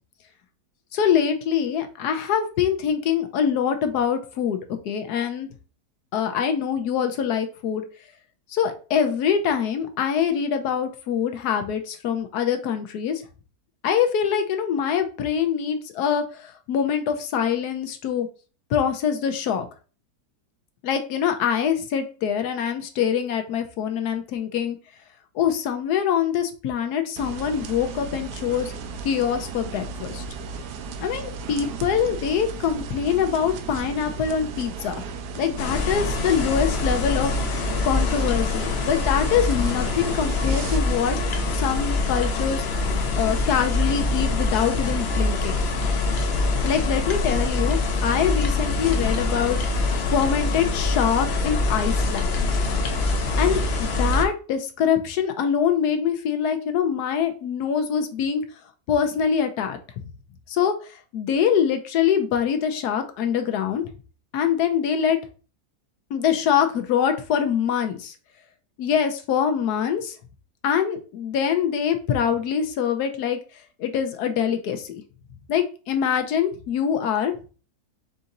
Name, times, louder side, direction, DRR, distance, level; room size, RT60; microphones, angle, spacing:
voice 1, 0.9-4.6 4.8-5.5 6.1-7.8 8.5-13.2 13.8-18.3 18.7-19.7 20.8-24.8 25.3-28.7 29.0-30.2 31.0-35.0 35.4-41.2 41.5-42.6 43.2-45.6 46.6-52.3 53.4-58.4 58.9-59.8 60.5-60.7 61.1-63.8 64.3-65.2 66.1-68.1 68.8-70.1 70.6-73.4 73.8-75.0 75.5-77.3, left 8 dB, 80° left, 7 dB, 1.2 m, -24 dB
sound 1, 27.2-40.8, right 4 dB, 80° right, 1.2 m, -35 dB
sound 2, 35.6-54.2, left 3 dB, 55° left, 0.7 m, -24 dB
4.8 x 2.6 x 4.0 m, 0.36 s
omnidirectional pair, 1.7 m